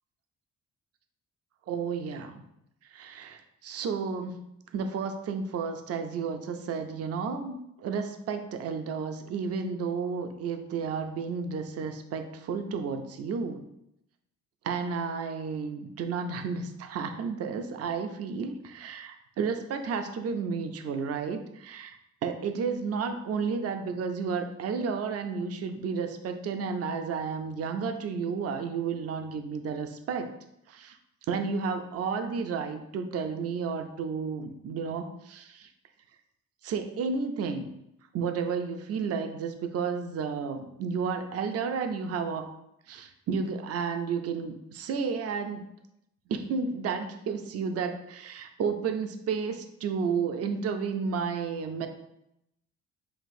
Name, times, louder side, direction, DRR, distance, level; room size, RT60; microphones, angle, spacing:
voice 1, 1.7-2.4 2.9-4.5 4.7-13.6 14.6-22.0 22.2-30.3 30.7-31.0 31.3-35.7 36.6-37.7 38.1-42.4 42.9-45.7 46.3-51.9, right 5 dB, 55° right, 7 dB, 0.5 m, -32 dB
5.9 x 2.4 x 2.6 m, 0.81 s
cardioid pair, 90°, 30 cm